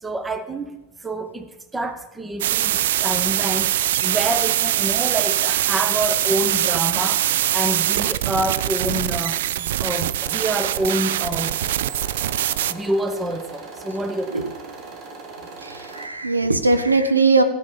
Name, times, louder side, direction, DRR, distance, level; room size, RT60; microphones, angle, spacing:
voice 1, 0.0-11.6 12.7-14.5, right 1 dB, 10° right, 11 dB, 0.8 m, -27 dB
sound 1, 2.4-12.7, right 12 dB, 55° right, 0.4 m, -22 dB
sound 2, 10.2-16.1, right 3 dB, 35° right, 1.6 m, -39 dB
voice 2, 15.6-17.4, right 3 dB, 80° right, 9 dB, 0.8 m, -19 dB
15.5 x 5.8 x 7.1 m, 1.1 s
figure-of-eight pair, 90°, 0 cm